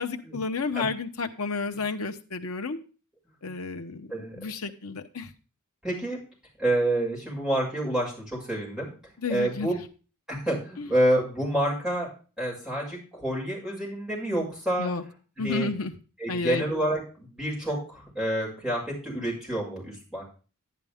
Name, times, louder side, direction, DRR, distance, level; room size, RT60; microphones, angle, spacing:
voice 1, 0.0-2.8 3.4-5.3 9.2-9.8 10.8-10.9 14.8-15.0 15.4-15.9 16.3-16.6, left 4 dB, 70° left, 5 dB, 1.0 m, -31 dB
voice 2, 4.1-4.4 5.8-6.2 6.6-8.9 9.3-9.7 10.3-12.1 12.4-14.9 15.4-15.7 16.2-20.2, right 1 dB, 5° right, -5 dB, 6.3 m, -28 dB
10.5 x 10.5 x 3.6 m, 0.35 s
head